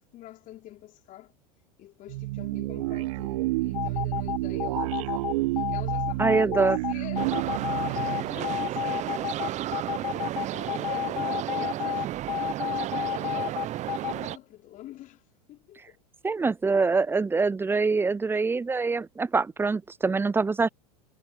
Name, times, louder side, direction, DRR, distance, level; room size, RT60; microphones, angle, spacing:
voice 1, 0.1-1.3 1.8-9.4 9.9-12.1 12.9-15.2 15.5-16.0, left 14 dB, 40° left, 3.6 m, -46 dB
sound 1, 2.1-9.3, right 20 dB, 60° right, 1.4 m, -30 dB
sound 2, 3.7-14.1, left 15 dB, 65° left, 0.9 m, -30 dB
voice 2, 6.2-6.8 16.2-20.7, right 4 dB, 10° right, 0.7 m, -24 dB
sound 3, 7.2-14.4, right 13 dB, 35° right, 1.1 m, -32 dB
figure-of-eight pair, 80°, 20 cm